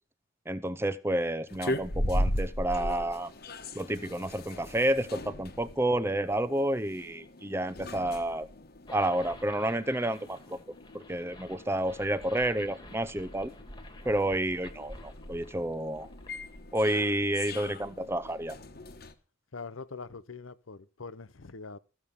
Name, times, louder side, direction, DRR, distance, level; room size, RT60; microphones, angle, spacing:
voice 1, 0.5-3.3 3.7-8.5 8.9-10.6 10.9-13.5 14.0-16.1 16.7-18.6, right 1 dB, 10° right, 0.7 m, -30 dB
sound 1, 1.5-19.1, left 1 dB, 50° left, 1.3 m, -39 dB
sound 2, 8.9-16.9, left 1 dB, 20° left, 1.7 m, -50 dB
voice 2, 19.5-21.8, left 4 dB, 85° left, 0.8 m, -43 dB
14.5 x 7.4 x 6.7 m
head